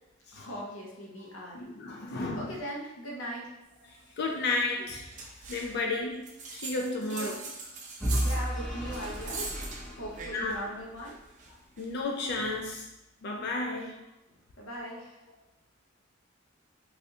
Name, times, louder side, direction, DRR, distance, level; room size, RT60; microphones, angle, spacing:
voice 1, 0.3-1.6 2.0-3.6 7.1-7.3 8.2-9.6 10.0-11.2 14.3-15.2, equal, 85° left, -3 dB, 0.8 m, -40 dB
voice 2, 1.5-2.5 4.2-5.1 5.5-7.4 10.3-10.6 11.8-12.9 13.2-14.0, left 3 dB, 55° left, 1 dB, 0.3 m, -32 dB
sound 1, 5.1-5.8 6.2-10.6 11.0-12.8, right 3 dB, 40° right, 0.5 m, -42 dB
Vehicle / Engine, 8.0-11.0, equal, ahead, 0.6 m, -33 dB
3.3 x 2.4 x 2.6 m, 0.92 s
head